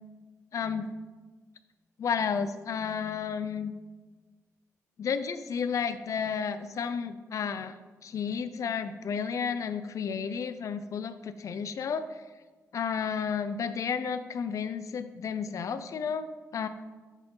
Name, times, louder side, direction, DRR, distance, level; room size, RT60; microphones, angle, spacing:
voice 1, 0.5-0.9 2.0-3.7 5.0-7.8 8.0-12.2 12.7-16.7, left 6 dB, 65° left, 11 dB, 0.5 m, -32 dB
8.0 x 4.4 x 5.6 m, 1.3 s
cardioid pair, 105°, 6 cm